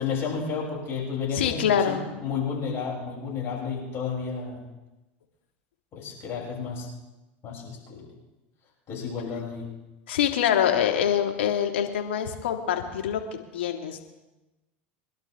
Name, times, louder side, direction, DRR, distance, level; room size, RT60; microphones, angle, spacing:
voice 1, 0.0-4.7 5.9-6.9 7.4-8.1 8.9-9.7, left 5 dB, 45° left, -2 dB, 6.9 m, -32 dB
voice 2, 1.3-2.0 10.1-13.2 13.5-14.0, left 9 dB, 80° left, 3 dB, 2.0 m, -25 dB
25.0 x 11.5 x 3.6 m, 1.0 s
hypercardioid pair, 90°, 6 cm